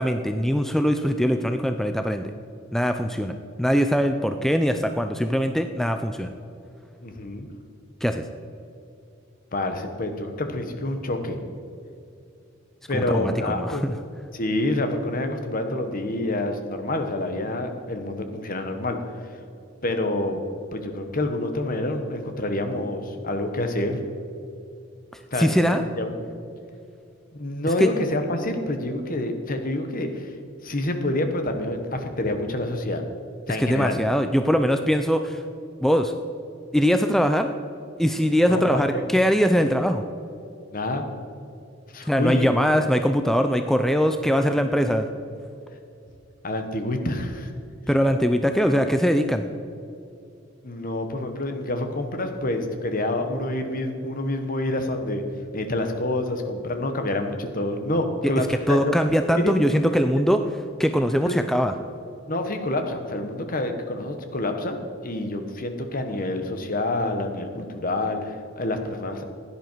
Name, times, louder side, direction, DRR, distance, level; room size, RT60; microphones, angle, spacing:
voice 1, 0.0-2.3 2.7-6.3 8.0-8.2 13.1-14.0 25.4-25.8 27.8-27.9 33.6-35.4 35.8-36.1 36.7-37.5 38.0-40.0 42.1-45.1 47.9-49.5 58.7-61.7, equal, ahead, 7 dB, 0.4 m, -22 dB
voice 2, 7.0-7.5 9.5-11.4 12.9-13.8 14.3-19.0 19.8-20.4 20.7-24.0 25.3-26.1 27.3-30.3 30.6-33.0 33.5-34.0 38.5-39.0 40.7-41.1 41.9-42.5 42.8-42.9 44.5-44.6 46.4-47.5 50.6-55.2 55.5-58.9 59.4-59.5 61.3-61.4 62.3-64.8 65.0-69.2, left 1 dB, 45° left, 6 dB, 1.3 m, -27 dB
16.0 x 10.5 x 4.6 m, 2.6 s
head